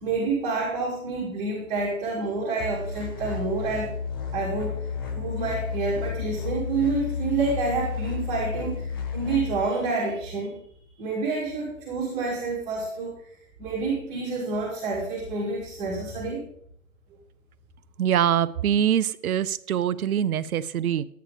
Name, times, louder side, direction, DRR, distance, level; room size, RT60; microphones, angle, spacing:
voice 1, 0.0-3.9 4.3-4.8 5.1-8.9 9.1-10.5 11.0-13.3 13.6-16.5, right 3 dB, 15° right, -5 dB, 2.2 m, -28 dB
sound 1, 2.6-9.5, left 6 dB, 15° left, 0.5 m, -32 dB
voice 2, 18.0-21.1, right 9 dB, 80° right, 16 dB, 0.7 m, -24 dB
12.5 x 9.0 x 3.4 m, 0.68 s
hypercardioid pair, 150°, 42 cm